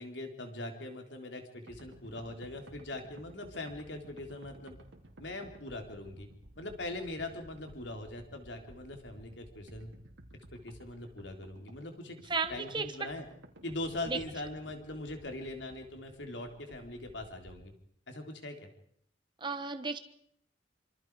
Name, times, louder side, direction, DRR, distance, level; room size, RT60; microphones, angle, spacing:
voice 1, 0.0-4.8 5.2-6.3 6.6-9.9 10.5-12.2 12.5-13.3 13.6-17.7 18.1-18.7, left 2 dB, 70° left, 4 dB, 3.7 m, -41 dB
sound 1, 1.7-17.7, right 1 dB, 85° right, 3.3 m, -55 dB
voice 2, 12.3-12.9 14.1-14.2 19.4-20.0, right 4 dB, 25° right, 8 dB, 1.1 m, -33 dB
26.5 x 26.0 x 4.9 m, 0.65 s
head